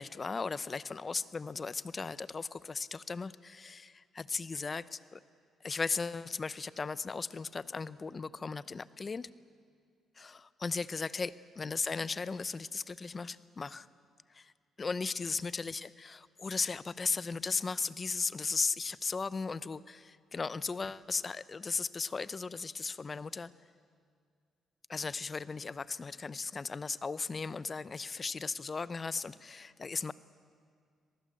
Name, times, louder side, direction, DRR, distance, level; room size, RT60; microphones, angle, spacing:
voice 1, 0.0-5.2 5.6-9.3 10.2-13.9 14.3-14.5 14.8-23.5 24.9-30.1, left 4 dB, 35° left, 17 dB, 0.7 m, -36 dB
25.0 x 19.0 x 7.7 m, 2.2 s
cardioid pair, 90°, 0 cm